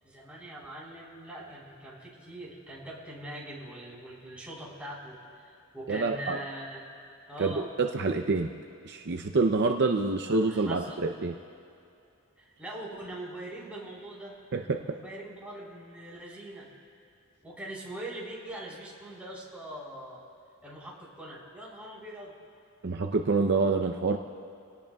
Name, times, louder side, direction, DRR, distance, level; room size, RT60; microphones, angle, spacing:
voice 1, 0.0-6.8 7.3-7.7 10.3-11.0 12.4-14.4 14.8-16.7 17.4-20.2 20.6-22.3, right 1 dB, 5° right, -6 dB, 4.0 m, -42 dB
voice 2, 5.9-6.4 7.4-8.5 8.8-11.3 14.5-14.8 22.8-24.2, right 3 dB, 50° right, 4 dB, 0.6 m, -27 dB
27.0 x 18.0 x 2.3 m, 2.6 s
head